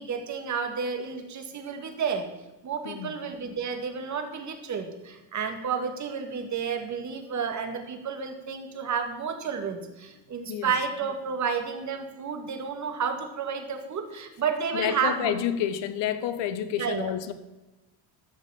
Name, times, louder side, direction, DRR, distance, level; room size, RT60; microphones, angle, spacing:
voice 1, 0.0-2.3 2.6-15.4 16.8-17.1, right 6 dB, 40° right, 2.0 m, -31 dB
voice 2, 14.7-17.3, left 10 dB, 65° left, 1.2 m, -29 dB
14.5 x 6.4 x 7.1 m
cardioid pair, 120°, 45 cm